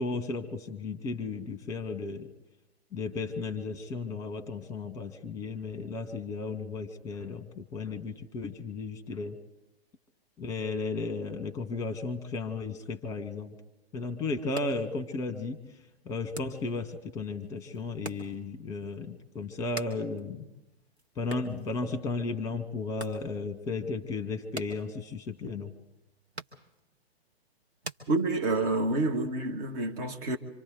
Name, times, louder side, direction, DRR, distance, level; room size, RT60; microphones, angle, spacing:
voice 1, 0.0-2.3 2.9-9.3 10.4-13.5 13.9-15.6 16.0-20.4 21.1-25.7, left 3 dB, 10° left, 1.5 m, -34 dB
sound 1, 14.3-28.8, right 1 dB, 85° right, 1.5 m, -48 dB
voice 2, 28.1-30.4, right 2 dB, 35° right, 1.7 m, -28 dB
26.5 x 25.5 x 4.0 m
figure-of-eight pair, 110°, 31 cm